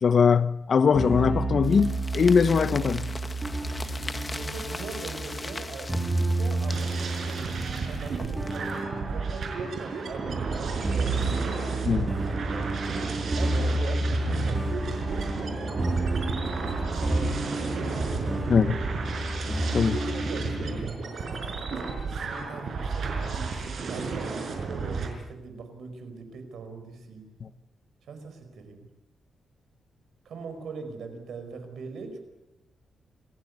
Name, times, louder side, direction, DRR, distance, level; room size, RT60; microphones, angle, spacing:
voice 1, 0.0-3.1 11.8-12.1 18.5-18.8 19.7-20.0, left 6 dB, 45° left, 0.9 m, -21 dB
sound 1, 0.9-20.7, right 2 dB, 15° right, 3.2 m, -30 dB
sound 2, 1.6-8.8, left 3 dB, 20° left, 1.8 m, -40 dB
voice 2, 4.4-6.1 6.4-7.5 7.8-11.3 12.4-12.6 13.4-16.2 16.6-18.1 20.1-27.3 28.1-28.9 30.2-32.2, right 4 dB, 75° right, 4.9 m, -42 dB
sound 3, 6.7-25.1, right 4 dB, 60° right, 5.4 m, -33 dB
28.0 x 15.0 x 9.5 m
wide cardioid pair, 135°, 0 cm